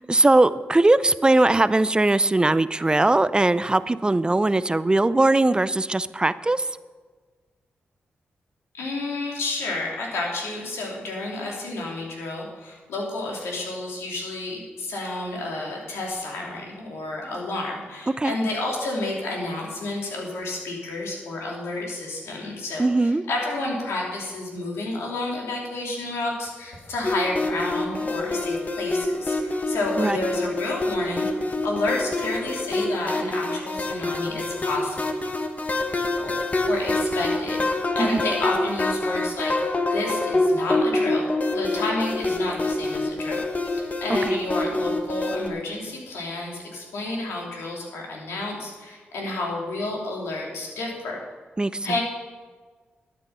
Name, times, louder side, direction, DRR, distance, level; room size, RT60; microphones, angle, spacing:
voice 1, 0.0-6.7 18.2-18.3 22.8-23.2 30.0-30.2 38.0-38.2 44.3-44.4 51.6-52.0, right 2 dB, 20° right, 15 dB, 0.5 m, -20 dB
voice 2, 8.7-35.0 36.2-36.3 36.6-39.5 39.9-51.2 51.8-52.0, left 2 dB, 90° left, -2 dB, 3.0 m, -30 dB
sound 1, 27.0-45.5, left 2 dB, 35° left, 1.4 m, -26 dB
12.0 x 9.1 x 5.6 m, 1.4 s
cardioid pair, 60°, 4 cm